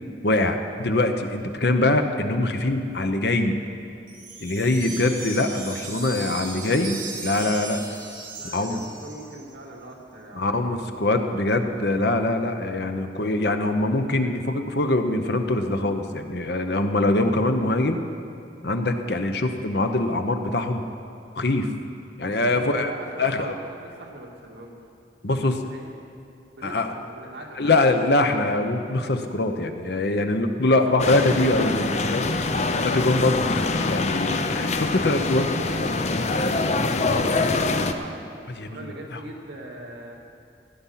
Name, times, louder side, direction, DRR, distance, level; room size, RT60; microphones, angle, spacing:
voice 1, 0.2-3.6 4.4-7.8 8.5-8.8 10.3-18.0 18.6-20.8 21.3-21.7 22.2-22.9 23.2-23.5 25.2-25.6 26.6-26.9 27.6-32.5 32.8-35.4 35.8-36.0 38.6-39.2, left 2 dB, 60° left, 6 dB, 0.9 m, -23 dB
sound 1, 4.1-9.4, right 3 dB, 45° right, 2.3 m, -37 dB
voice 2, 8.4-10.8 17.1-17.2 22.3-24.8 25.3-25.9 26.5-27.7 30.5-30.8 35.3-38.2 38.7-40.2, right 1 dB, 70° right, -2 dB, 2.1 m, -41 dB
sound 2, 31.0-37.9, left 3 dB, 35° left, 0.5 m, -24 dB
16.0 x 9.7 x 5.7 m, 2.5 s
head